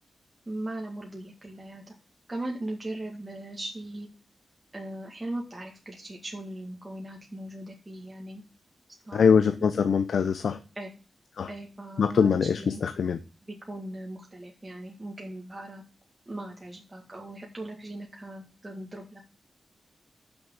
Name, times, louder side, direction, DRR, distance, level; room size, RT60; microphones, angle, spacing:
voice 1, 0.5-1.9 2.3-4.1 4.7-8.4 9.1-9.5 10.8-10.9 11.5-12.8 13.7-15.8 16.3-19.2, right 1 dB, 20° right, -1 dB, 2.0 m, -39 dB
voice 2, 9.1-10.6 11.4-11.5 12.0-13.2, left 6 dB, 80° left, 10 dB, 0.6 m, -23 dB
6.3 x 6.3 x 7.2 m, 0.35 s
wide cardioid pair, 110°, 0 cm